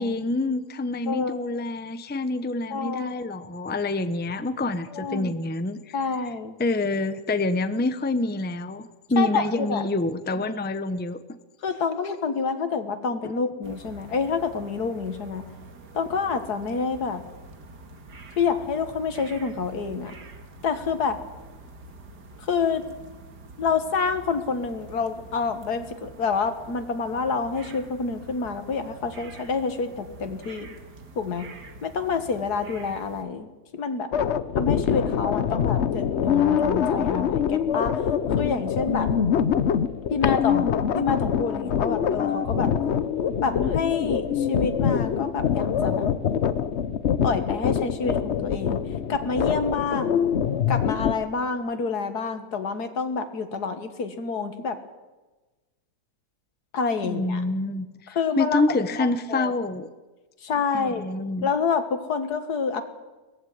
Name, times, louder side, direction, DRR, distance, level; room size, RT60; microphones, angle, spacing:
voice 1, 0.0-5.9 6.6-11.2 57.0-59.9 60.7-61.5, left 2 dB, 10° left, 11 dB, 0.6 m, -27 dB
voice 2, 2.7-3.1 4.9-5.3 5.9-6.5 9.2-9.8 11.6-15.4 15.9-17.2 18.4-20.1 20.6-21.2 22.4-22.8 23.6-30.7 31.2-31.5 31.8-34.1 34.6-37.9 38.4-39.1 40.1-40.7 40.9-42.7 43.4-46.1 47.2-48.8 49.1-50.2 50.7-54.8 56.7-57.4 58.1-58.8 59.3-59.5 60.4-61.0 61.4-62.8, left 5 dB, 75° left, 9 dB, 2.2 m, -28 dB
sound 1, 13.6-33.3, right 2 dB, 90° right, 2.5 m, -46 dB
sound 2, 34.1-51.1, left 8 dB, 55° left, 0.9 m, -24 dB
18.5 x 15.0 x 9.4 m, 1.2 s
omnidirectional pair, 1.7 m